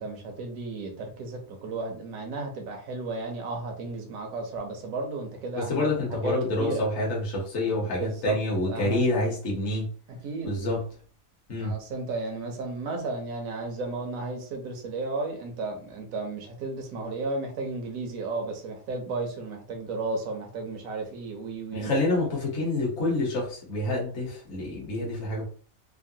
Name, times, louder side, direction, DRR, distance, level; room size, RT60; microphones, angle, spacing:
voice 1, 0.0-6.3 6.6-6.8 8.0-8.4 8.7-9.0 10.2-10.7 11.6-21.9, right 3 dB, 85° right, 2 dB, 1.2 m, -33 dB
voice 2, 5.5-9.9 10.4-10.8 11.5-11.8 21.7-25.4, left 2 dB, 55° left, -3 dB, 1.2 m, -27 dB
3.7 x 2.1 x 2.6 m, 0.42 s
omnidirectional pair, 1.4 m